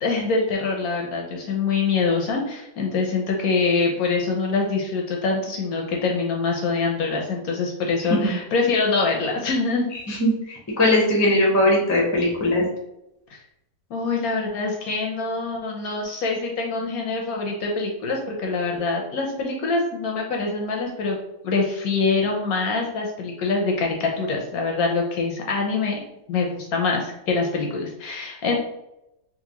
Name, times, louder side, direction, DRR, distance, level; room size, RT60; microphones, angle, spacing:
voice 1, 0.0-9.9 13.3-13.4 13.9-21.2 21.4-26.0 26.3-28.6, left 4 dB, 70° left, 0 dB, 0.9 m, -24 dB
voice 2, 10.1-12.6, left 1 dB, 25° left, -3 dB, 0.3 m, -20 dB
3.9 x 2.3 x 2.9 m, 0.86 s
omnidirectional pair, 1.9 m